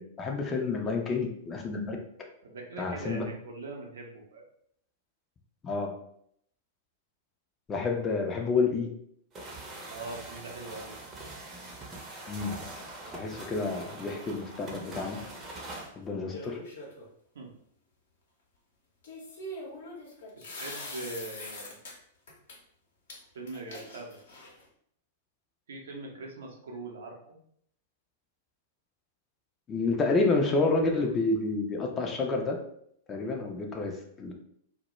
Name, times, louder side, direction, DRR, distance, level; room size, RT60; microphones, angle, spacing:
voice 1, 0.0-2.0 2.8-3.3 5.6-5.9 7.7-8.9 12.3-12.7 13.1-15.2 16.0-16.6 29.7-32.6 33.1-34.4, left 3 dB, 25° left, 1 dB, 0.4 m, -29 dB
voice 2, 2.4-4.5 9.9-10.9 17.3-17.5 20.5-21.8 23.3-24.2 25.7-27.4 33.7-33.9, right 2 dB, 65° right, 1 dB, 0.5 m, -41 dB
sound 1, 9.3-15.9, right 2 dB, 25° right, 0.6 m, -43 dB
sound 2, 16.3-17.1 19.0-21.9 22.3-22.6 23.1-23.2 23.5-24.7, left 1 dB, 65° left, 0.7 m, -42 dB
2.1 x 2.0 x 3.0 m, 0.69 s
figure-of-eight pair, 100°, 0 cm